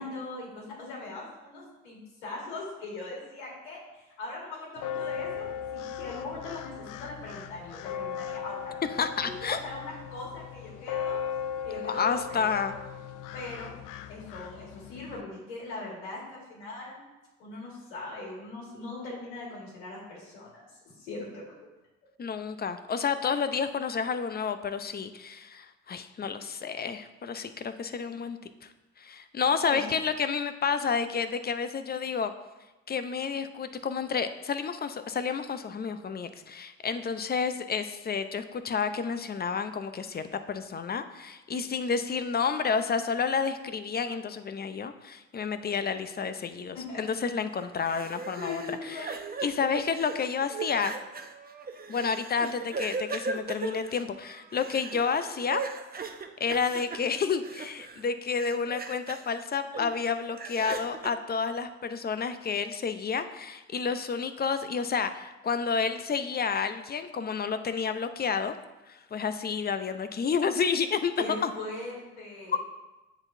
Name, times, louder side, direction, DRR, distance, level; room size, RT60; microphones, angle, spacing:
voice 1, 0.0-8.8 9.2-11.2 11.6-12.6 13.3-13.7 14.1-17.0 17.4-21.4 29.6-29.8 46.7-47.0 47.8-48.0 48.4-49.1 71.2-72.6, left 2 dB, 85° left, -4 dB, 1.9 m, -40 dB
sound 1, 4.8-15.2, left 8 dB, 65° left, 0.5 m, -38 dB
voice 2, 9.0-9.6 11.9-12.7 22.2-28.7 29.0-32.3 32.9-49.1 49.4-50.9 51.9-55.6 56.4-68.5 68.9-71.1 71.4-71.5 72.5-72.6, left 6 dB, 30° left, 10 dB, 0.6 m, -30 dB
sound 2, 47.6-58.1 58.4-59.3 59.7-61.1, right 4 dB, 25° right, 0.8 m, -38 dB
9.6 x 4.1 x 2.7 m, 1.1 s
hypercardioid pair, 55°, 34 cm